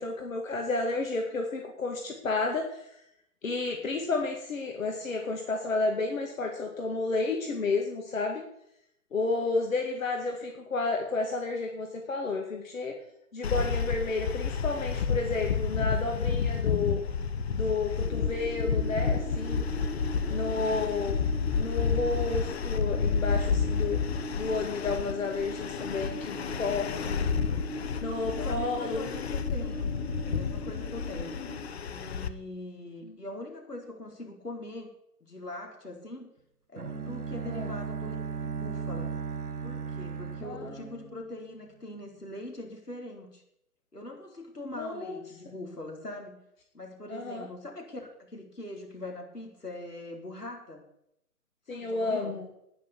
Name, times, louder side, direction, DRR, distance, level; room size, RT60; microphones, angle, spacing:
voice 1, 0.0-2.9 3.4-8.4 9.1-12.9 13.3-17.0 17.5-19.7 20.3-24.0 24.4-27.2 28.0-29.1 37.5-37.7 40.4-40.8 44.7-45.2 47.1-47.5 51.7-52.5, left 3 dB, 60° left, 2 dB, 2.3 m, -31 dB
sound 1, 13.4-32.3, left 6 dB, 45° left, 1.0 m, -30 dB
sound 2, 18.0-31.6, left 1 dB, 10° left, 3.7 m, -40 dB
voice 2, 28.2-29.9 30.2-31.4 31.9-34.9 35.2-36.3 36.7-38.2 38.4-39.1 39.6-43.4 43.9-46.4 46.7-50.8 51.7-52.4, left 2 dB, 85° left, 1 dB, 4.2 m, -42 dB
Bowed string instrument, 36.8-41.7, right 5 dB, 70° right, 1.9 m, -36 dB
10.0 x 10.0 x 8.4 m, 0.77 s
figure-of-eight pair, 130°, 46 cm